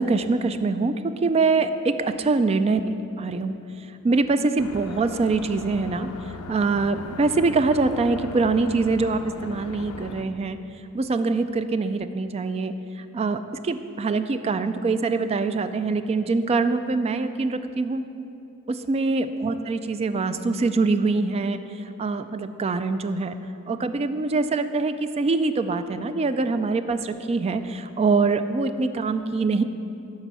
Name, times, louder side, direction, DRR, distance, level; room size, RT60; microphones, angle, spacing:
voice 1, 0.0-2.8 3.2-3.6 4.0-6.1 6.5-10.6 10.9-12.7 13.1-18.0 18.7-21.6 22.0-23.4 23.7-29.6, right 3 dB, 25° right, 10 dB, 0.3 m, -24 dB
sound 1, 4.6-10.2, left 3 dB, 75° left, 0.5 m, -38 dB
12.5 x 5.1 x 5.5 m, 2.8 s
head